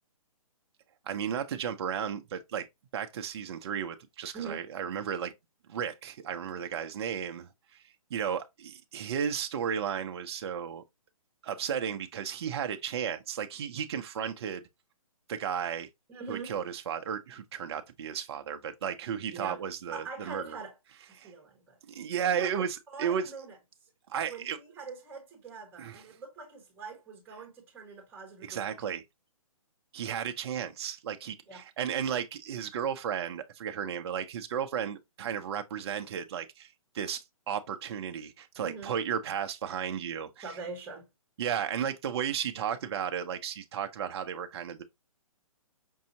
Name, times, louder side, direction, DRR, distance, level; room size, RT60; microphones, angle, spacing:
voice 1, 1.1-2.7 2.9-5.3 5.7-7.5 8.1-10.8 11.4-14.6 15.3-15.9 16.3-20.6 21.2-21.3 21.9-23.3 24.1-24.6 25.8-26.0 28.4-29.0 29.9-40.4 41.4-44.8, right 8 dB, 45° right, 0.6 m, -34 dB
voice 2, 16.1-16.5 19.3-19.6 19.9-20.7 21.2-21.8 22.3-23.6 24.3-28.7 31.5-31.6 38.6-38.9 40.4-41.1, right 5 dB, 10° right, 1.3 m, -43 dB
5.4 x 2.7 x 2.7 m
hypercardioid pair, 155°, 18 cm